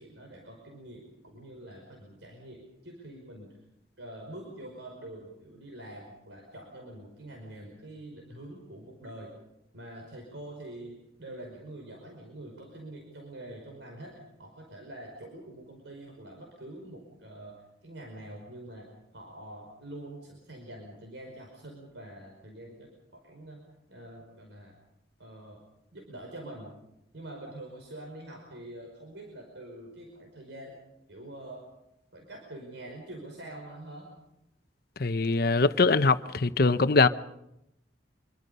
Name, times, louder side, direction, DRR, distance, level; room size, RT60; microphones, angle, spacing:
voice 1, 0.0-3.6 4.0-9.3 9.7-18.9 19.1-24.8 25.2-25.6 25.9-26.8 27.1-30.8 31.1-31.7 32.1-34.1, right 1 dB, 85° right, 5.2 m, -45 dB
voice 2, 35.0-37.1, left 3 dB, 55° left, 0.8 m, -22 dB
26.0 x 23.0 x 5.5 m
head